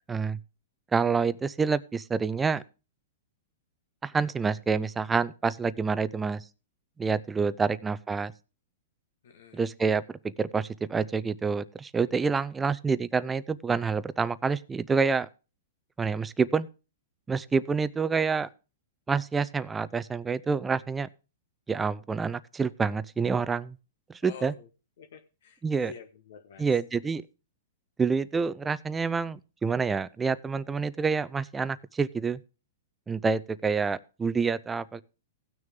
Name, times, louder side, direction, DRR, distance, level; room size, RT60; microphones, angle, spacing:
voice 1, 0.1-0.4 0.9-2.6 4.0-6.4 7.0-8.3 9.5-15.3 16.0-16.7 17.3-18.5 19.1-21.1 21.7-23.8 24.1-24.5 25.6-25.9 26.6-27.2 28.0-32.4 33.1-35.0, right 5 dB, 10° right, 0.4 m, -27 dB
voice 2, 9.2-9.7 24.2-24.7 25.0-26.8, left 6 dB, 70° left, 1.2 m, -48 dB
16.5 x 6.4 x 3.6 m
hypercardioid pair, 145°, 0 cm